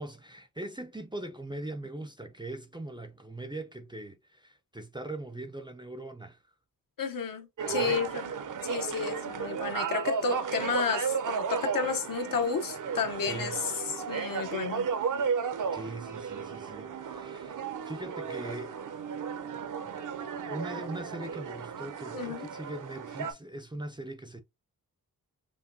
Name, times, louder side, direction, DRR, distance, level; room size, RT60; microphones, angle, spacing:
voice 1, 0.0-6.4 7.7-8.0 13.3-13.6 15.7-18.8 19.8-20.0 20.3-24.4, right 1 dB, 10° right, 0.5 m, -41 dB
voice 2, 7.0-8.3 8.6-13.5 13.9-14.9 22.1-22.5, left 5 dB, 65° left, 0.9 m, -32 dB
sound 1, 7.6-23.3, right 6 dB, 55° right, 0.6 m, -34 dB
5.8 x 2.2 x 2.6 m
wide cardioid pair, 105°, 37 cm